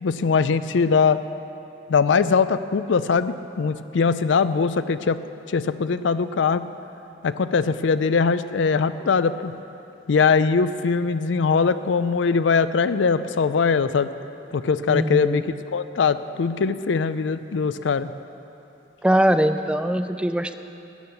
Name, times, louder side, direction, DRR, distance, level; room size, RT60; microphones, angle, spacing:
voice 1, 0.0-1.2 1.9-5.2 5.5-6.7 7.2-9.5 10.1-14.1 14.5-15.5 15.7-18.1, left 5 dB, 80° left, 13 dB, 0.4 m, -21 dB
voice 2, 14.9-15.5 19.0-20.6, right 1 dB, 5° right, 10 dB, 0.4 m, -21 dB
13.5 x 7.0 x 9.3 m, 2.9 s
head